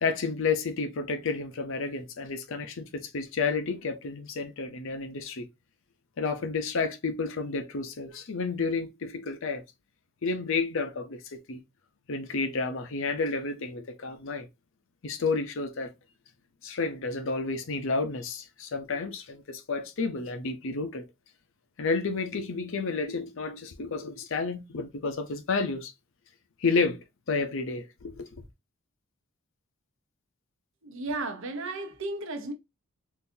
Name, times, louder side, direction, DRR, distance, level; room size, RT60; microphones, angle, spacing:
voice 1, 0.0-5.4 6.2-9.6 10.2-11.6 12.1-14.5 15.0-15.9 16.6-21.0 21.8-25.9 26.6-27.0 27.3-28.3, left 4 dB, 60° left, 0.6 m, -31 dB
voice 2, 30.8-32.5, right 2 dB, 60° right, 0.8 m, -34 dB
3.8 x 2.6 x 2.6 m
head